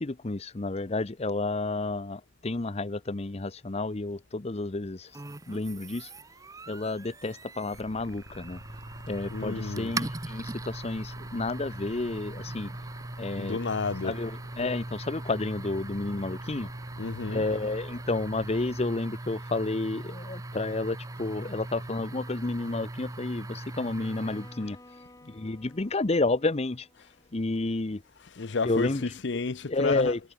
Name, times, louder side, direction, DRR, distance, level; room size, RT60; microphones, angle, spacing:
voice 1, 0.0-5.1 5.5-6.1 6.7-8.6 9.1-12.7 13.2-13.6 14.0-14.3 14.6-16.7 17.3-24.8 25.3-26.9 27.3-28.0 28.6-29.0 29.7-30.2, left 2 dB, 35° left, 0.8 m, -30 dB
sound 1, 5.1-24.7, right 2 dB, 20° right, 0.7 m, -40 dB
sound 2, 7.7-18.9, left 1 dB, 90° left, 4.9 m, -52 dB
voice 2, 9.3-9.9 13.4-14.2 17.0-17.4 28.3-30.1, left 4 dB, 70° left, 0.7 m, -31 dB
Bowed string instrument, 23.8-27.9, left 1 dB, 20° left, 4.2 m, -55 dB
head